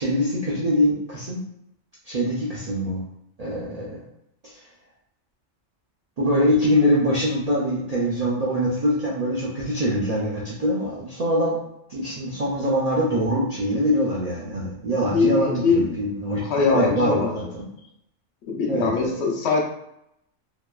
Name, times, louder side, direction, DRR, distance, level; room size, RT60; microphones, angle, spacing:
voice 1, 0.0-1.4 2.1-3.0 3.4-4.0 4.4-4.5 6.2-11.6 11.9-17.7 18.7-19.1, equal, 80° right, -6 dB, 0.3 m, -23 dB
voice 2, 15.1-16.0 16.4-17.5 18.5-19.6, left 4 dB, 65° left, 0 dB, 0.8 m, -22 dB
2.8 x 2.2 x 2.2 m, 0.80 s
omnidirectional pair, 1.3 m